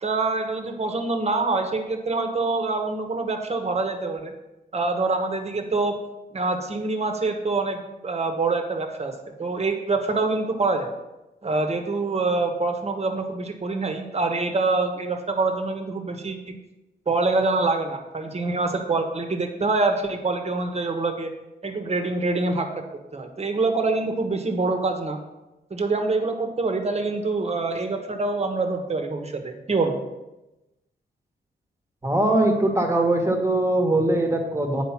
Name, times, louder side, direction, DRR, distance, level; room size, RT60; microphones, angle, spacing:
voice 1, 0.0-4.3 4.7-6.0 6.3-10.9 11.4-16.5 17.1-21.3 21.6-22.7 23.1-25.2 25.7-30.0, right 3 dB, 35° right, 5 dB, 1.3 m, -25 dB
voice 2, 32.0-34.8, right 1 dB, 15° right, 3 dB, 1.4 m, -21 dB
9.2 x 5.1 x 5.9 m, 1.0 s
wide cardioid pair, 120°, 18 cm